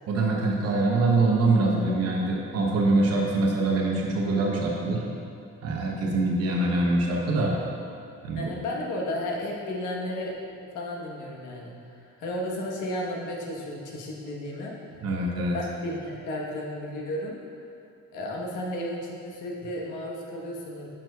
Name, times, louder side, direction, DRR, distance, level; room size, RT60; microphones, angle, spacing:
voice 1, 0.1-5.0 5.6-7.5 8.2-8.5 15.0-15.6, right 2 dB, 55° right, -1 dB, 0.8 m, -24 dB
voice 2, 8.3-10.3 10.7-14.7 15.5-17.4 18.1-20.9, left 1 dB, 85° left, -2 dB, 1.2 m, -33 dB
8.8 x 6.1 x 2.3 m, 2.5 s
cardioid pair, 180°, 30 cm